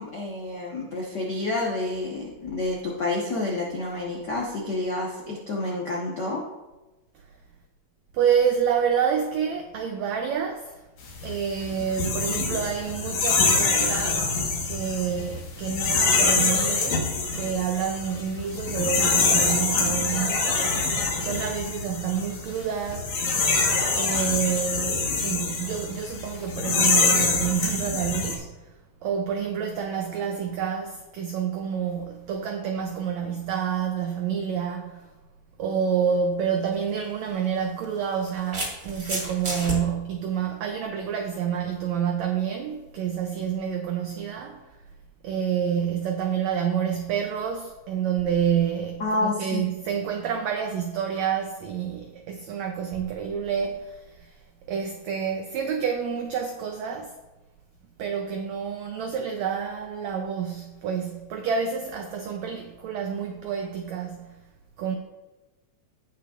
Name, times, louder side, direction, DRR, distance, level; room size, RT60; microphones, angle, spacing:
voice 1, 0.0-6.4 49.0-49.6, left 2 dB, 75° left, 0.9 m, -29 dB
voice 2, 8.1-10.8 11.2-17.1 17.3-20.8 21.2-23.1 23.9-28.6 29.0-35.1 35.6-44.6 45.2-54.4 54.7-57.1 58.0-64.4 64.8-65.0, right 7 dB, 85° right, 1.5 m, -28 dB
sound 1, 11.1-28.4, left 4 dB, 60° left, 2.4 m, -25 dB
sound 2, 36.6-36.8 37.8-39.8, right 1 dB, 30° right, 2.0 m, -31 dB
17.0 x 5.8 x 2.5 m
omnidirectional pair, 4.0 m